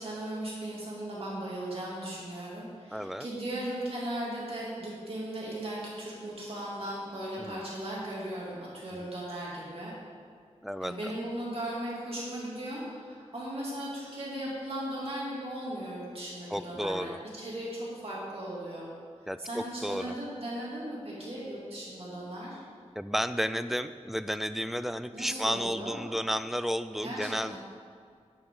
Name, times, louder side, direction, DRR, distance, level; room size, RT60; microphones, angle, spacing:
voice 1, 0.0-9.9 10.8-18.9 19.4-22.6 25.1-26.0 27.0-27.6, right 1 dB, 55° right, -6 dB, 2.9 m, -37 dB
voice 2, 2.9-3.3 7.4-7.6 9.0-9.1 10.6-11.1 16.5-17.2 19.3-20.2 23.0-27.6, equal, ahead, 11 dB, 0.4 m, -32 dB
11.0 x 9.0 x 3.9 m, 2.2 s
wide cardioid pair, 85°, 12 cm